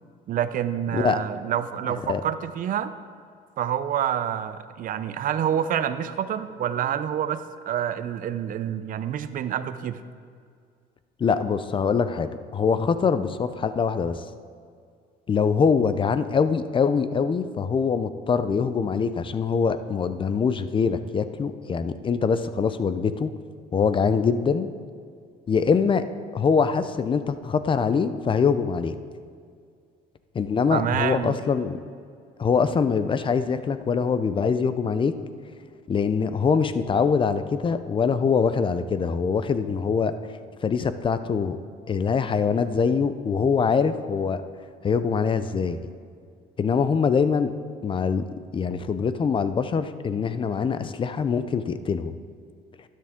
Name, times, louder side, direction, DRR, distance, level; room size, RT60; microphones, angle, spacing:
voice 1, 0.3-2.9 3.6-7.4 7.7-10.0 30.7-31.3, right 10 dB, 55° right, 12 dB, 0.6 m, -27 dB
voice 2, 1.9-2.2 11.2-14.2 15.3-23.3 23.7-24.7 25.5-26.0 26.3-28.9 30.3-31.8 32.4-35.1 35.9-40.1 40.6-41.6 41.9-44.4 44.8-45.8 46.6-47.5 47.8-48.2 48.5-52.2, left 6 dB, 30° left, 12 dB, 0.6 m, -23 dB
12.5 x 10.5 x 3.7 m, 2.2 s
cardioid pair, 110°, 17 cm